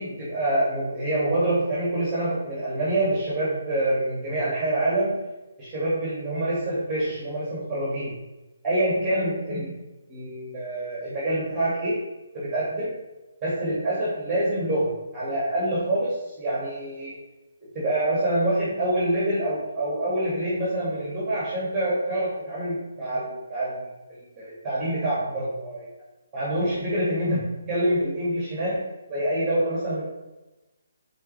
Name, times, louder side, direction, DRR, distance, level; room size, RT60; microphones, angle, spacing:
voice 1, 0.0-5.2 5.6-8.1 8.6-9.7 10.1-12.0 12.3-12.9 13.4-17.1 17.7-23.8 24.1-25.9 26.3-27.4 27.7-30.0, right 1 dB, 15° right, -7 dB, 2.3 m, -26 dB
9.3 x 4.1 x 3.4 m, 1.1 s
figure-of-eight pair, 140°, 0 cm